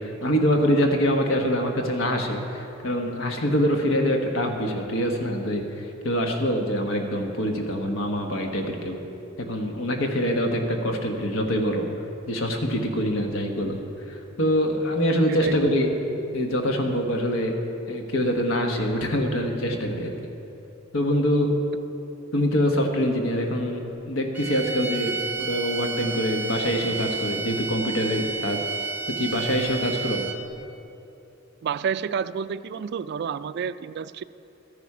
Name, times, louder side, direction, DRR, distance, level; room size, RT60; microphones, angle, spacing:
voice 1, 0.0-9.0 9.4-11.8 12.3-13.8 14.1-15.9 16.3-17.5 17.9-20.1 20.9-21.5 22.3-28.6 29.1-30.3, equal, 80° left, 3 dB, 1.3 m, -25 dB
voice 2, 15.3-15.8 31.6-34.2, right 7 dB, 55° right, 15 dB, 0.3 m, -30 dB
sound 1, 24.3-30.6, right 4 dB, 10° right, 0.6 m, -31 dB
13.5 x 10.0 x 4.9 m, 2.8 s
head